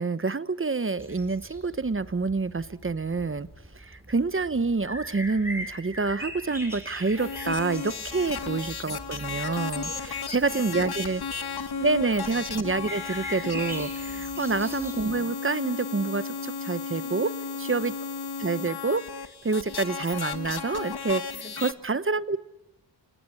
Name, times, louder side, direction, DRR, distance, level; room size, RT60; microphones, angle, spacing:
voice 1, 0.0-3.5 3.7-9.9 10.3-11.2 11.8-17.3 17.7-17.9 18.4-19.0 19.4-21.2 21.6-22.4, right 3 dB, 30° right, 15 dB, 1.0 m, -27 dB
sound 1, 1.0-15.2, equal, 5° right, 6.0 m, -42 dB
sound 2, 7.2-21.7, left 5 dB, 60° left, 1.6 m, -34 dB
voice 2, 8.0-8.5 9.8-11.9 12.5-12.7 14.0-14.5 17.0-17.3 21.3-21.5, left 2 dB, 25° left, 10 dB, 4.5 m, -50 dB
27.5 x 19.0 x 9.7 m, 0.91 s
wide cardioid pair, 105°, 43 cm